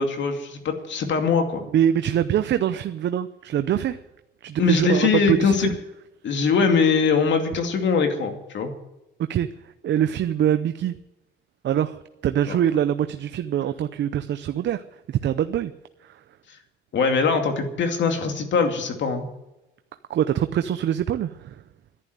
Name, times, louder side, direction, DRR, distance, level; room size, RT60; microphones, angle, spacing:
voice 1, 0.0-1.6 4.6-5.7 6.2-8.7 12.5-12.6 16.9-19.3, left 5 dB, 65° left, 5 dB, 2.4 m, -22 dB
voice 2, 1.7-4.0 4.4-5.7 9.3-9.5 9.8-10.9 11.6-14.8 15.1-15.7 16.0-16.2 20.1-21.6, right 10 dB, 65° right, 10 dB, 0.7 m, -24 dB
11.5 x 11.0 x 9.3 m, 0.94 s
cardioid pair, 90°, 20 cm